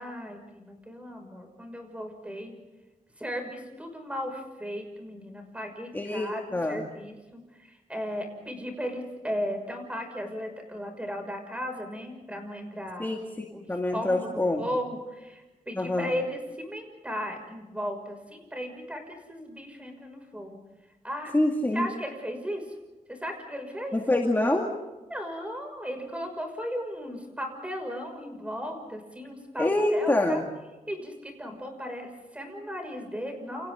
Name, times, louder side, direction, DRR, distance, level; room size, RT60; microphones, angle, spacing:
voice 1, 0.0-2.5 3.2-13.2 13.5-13.7 13.9-20.6 21.0-21.3 21.7-22.7 23.1-24.0 25.1-30.4 30.9-33.7, equal, 10° right, 4 dB, 6.2 m, -36 dB
voice 2, 5.9-6.9 13.0-14.6 15.8-16.1 21.3-21.9 23.9-24.7 29.6-30.4, left 1 dB, 15° left, 0 dB, 2.4 m, -26 dB
29.5 x 29.0 x 3.9 m, 1.1 s
wide cardioid pair, 145°, 14 cm